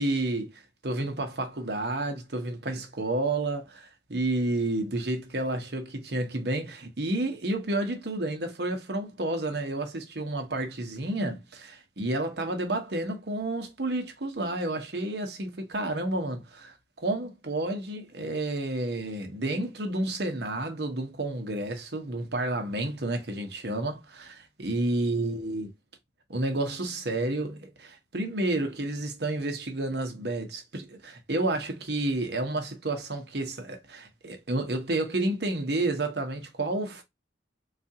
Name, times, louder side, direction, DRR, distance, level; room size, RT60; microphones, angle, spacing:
voice 1, 0.0-3.6 4.1-25.7 26.3-37.0, right 2 dB, 60° right, 1.0 m, -30 dB
4.2 x 2.4 x 2.7 m
head